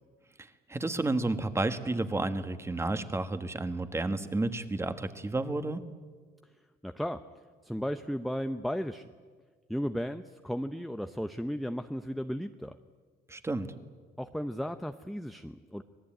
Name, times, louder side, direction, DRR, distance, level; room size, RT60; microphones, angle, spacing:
voice 1, 0.7-5.8 13.3-13.7, right 2 dB, 15° right, 9 dB, 1.5 m, -31 dB
voice 2, 6.8-7.2 7.6-9.1 9.7-12.8 14.2-15.8, equal, ahead, 8 dB, 0.7 m, -35 dB
26.0 x 18.5 x 9.0 m, 1.5 s
cardioid pair, 110°, 17 cm